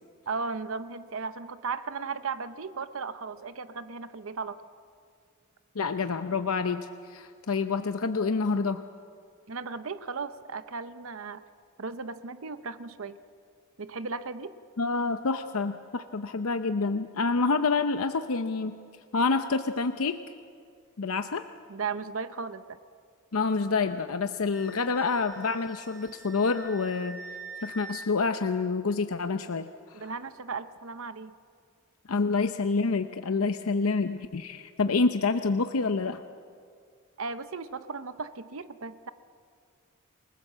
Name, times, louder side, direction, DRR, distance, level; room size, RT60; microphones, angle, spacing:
voice 1, 0.3-4.5 9.5-11.4 11.8-13.2 13.8-14.5 21.7-22.8 29.9-31.3 37.2-39.1, right 4 dB, 70° right, 11 dB, 0.8 m, -36 dB
voice 2, 5.7-8.8 14.8-18.8 19.1-20.2 21.0-21.4 23.3-27.2 27.6-30.1 32.1-36.2, left 4 dB, 80° left, 8 dB, 0.7 m, -27 dB
Wind instrument woodwind instrument, 24.5-28.1, right 3 dB, 15° right, 5.2 m, -45 dB
29.0 x 20.0 x 7.5 m, 2.3 s
head